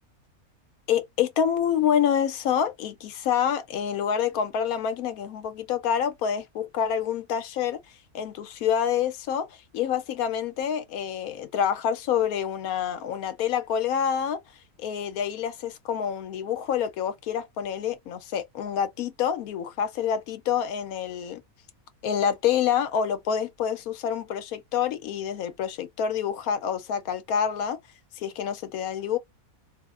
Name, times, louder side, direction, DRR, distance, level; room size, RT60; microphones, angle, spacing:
voice 1, 0.9-7.8 8.1-9.5 9.7-14.4 14.8-21.4 22.0-27.8 28.2-29.2, left 8 dB, 75° left, 1.1 m, -27 dB
4.0 x 2.1 x 2.4 m
omnidirectional pair, 1.6 m